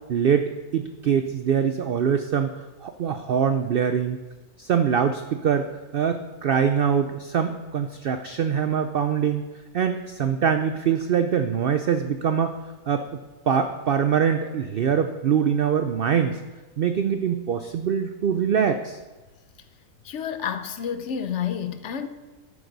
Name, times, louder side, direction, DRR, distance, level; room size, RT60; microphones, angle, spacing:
voice 1, 0.1-2.5 2.8-4.2 4.6-5.7 5.9-9.4 9.7-12.6 12.9-13.0 13.5-16.4 16.8-19.0, right 7 dB, 85° right, 8 dB, 0.5 m, -23 dB
voice 2, 20.0-22.1, left 8 dB, 60° left, 9 dB, 0.9 m, -29 dB
11.0 x 9.6 x 4.0 m, 1.2 s
omnidirectional pair, 1.6 m